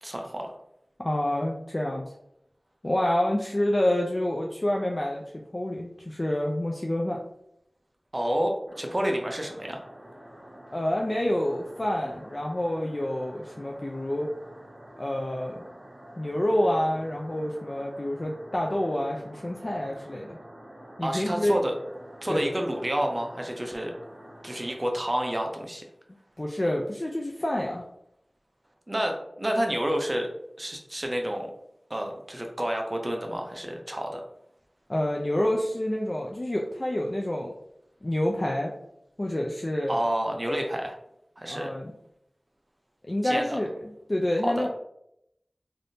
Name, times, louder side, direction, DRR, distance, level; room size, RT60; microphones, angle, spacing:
voice 1, 0.0-0.5 8.1-9.8 21.0-21.8 22.2-23.9 24.4-25.8 28.9-30.3 30.6-31.5 31.9-34.2 39.9-40.9 41.4-41.8 43.2-43.6 44.4-44.7, equal, 35° right, 2 dB, 0.6 m, -29 dB
voice 2, 1.0-2.1 2.8-5.2 5.5-7.2 10.7-14.3 15.0-15.6 16.2-20.4 21.0-21.5 22.3-22.5 26.4-27.8 34.9-37.5 38.0-38.7 39.2-39.9 41.5-41.9 43.1-44.7, left 1 dB, 45° left, 0 dB, 0.4 m, -28 dB
sound 1, 8.7-24.8, equal, 65° right, 1.2 m, -47 dB
3.4 x 2.6 x 2.7 m, 0.78 s
wide cardioid pair, 40°, 0 cm